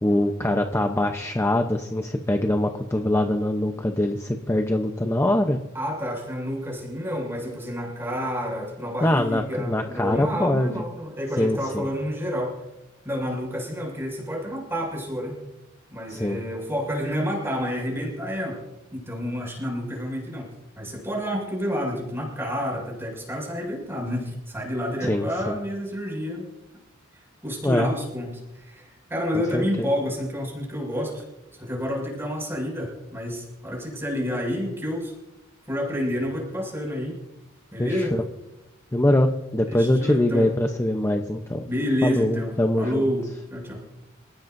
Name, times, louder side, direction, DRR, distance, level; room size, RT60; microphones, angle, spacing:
voice 1, 0.0-5.6 9.0-10.8 11.4-11.9 16.1-16.4 25.0-25.6 27.6-27.9 29.5-29.9 37.8-38.1 38.9-41.7 42.0-43.1, left 1 dB, 15° left, 4 dB, 0.8 m, -23 dB
voice 2, 5.7-12.6 13.0-15.3 15.9-18.6 18.9-20.5 20.8-26.4 27.4-31.2 31.5-35.1 35.7-37.2 37.7-38.1 39.7-40.5 41.6-43.2 43.5-43.8, equal, 10° right, -1 dB, 6.4 m, -29 dB
28.0 x 16.5 x 2.7 m, 0.97 s
head